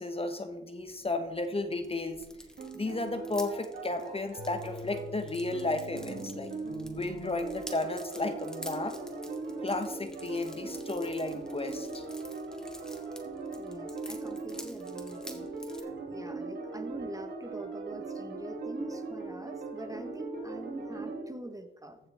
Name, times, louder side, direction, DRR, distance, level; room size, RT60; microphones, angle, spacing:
voice 1, 0.0-2.2 2.7-6.5 6.9-9.0 9.6-12.0, left 2 dB, 30° left, 8 dB, 1.2 m, -33 dB
sound 1, 0.8-15.8, equal, 5° left, 2.0 m, -50 dB
sound 2, 2.6-21.2, right 3 dB, 70° right, 2.7 m, -40 dB
sound 3, 4.4-6.9, left 6 dB, 80° left, 1.1 m, -48 dB
voice 2, 13.6-22.0, right 1 dB, 20° right, 8 dB, 1.2 m, -44 dB
14.5 x 7.3 x 3.6 m, 1.0 s
cardioid pair, 55°, 18 cm